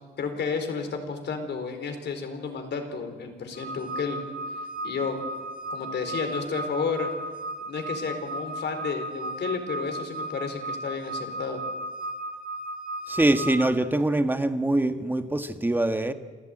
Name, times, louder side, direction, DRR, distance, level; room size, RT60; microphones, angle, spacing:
voice 1, 0.2-4.2 4.8-5.2 5.7-7.1 7.7-11.6, left 5 dB, 60° left, 6 dB, 4.4 m, -31 dB
sound 1, 3.5-13.6, right 1 dB, 45° left, 6.2 m, -35 dB
voice 2, 13.1-16.1, right 1 dB, 10° right, 8 dB, 1.6 m, -24 dB
27.5 x 14.0 x 9.1 m, 1.4 s
cardioid pair, 90°, 20 cm